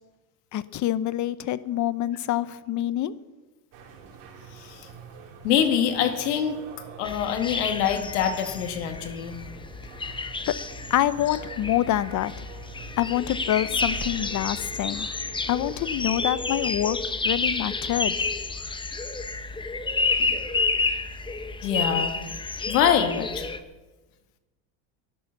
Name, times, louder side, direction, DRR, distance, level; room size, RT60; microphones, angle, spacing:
voice 1, 0.5-3.1 10.1-10.5 10.9-12.4 13.0-15.1 15.5-17.0 17.2-18.2, left 12 dB, 40° left, 16 dB, 0.8 m, -26 dB
sound 1, 3.7-16.1, right 6 dB, 65° right, 3.6 m, -45 dB
voice 2, 4.6-4.9 5.4-6.6 7.0-9.3 20.2-20.4 21.6-22.3 22.7-23.5, left 8 dB, 85° left, 6 dB, 2.2 m, -25 dB
sound 2, 7.0-23.6, left 3 dB, 10° left, 0.8 m, -30 dB
13.0 x 11.0 x 7.2 m, 1.2 s
supercardioid pair, 120°, 45 cm